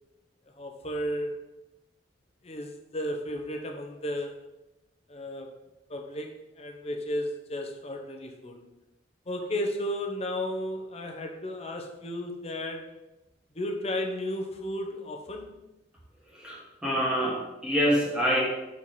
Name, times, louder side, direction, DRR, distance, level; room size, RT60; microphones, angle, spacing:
voice 1, 0.6-1.4 2.4-4.4 5.1-5.5 5.9-8.6 9.3-12.9 13.5-15.5, left 1 dB, 35° left, 3 dB, 0.8 m, -34 dB
voice 2, 16.3-18.4, equal, 5° right, -5 dB, 1.2 m, -26 dB
5.6 x 4.2 x 4.8 m, 0.98 s
head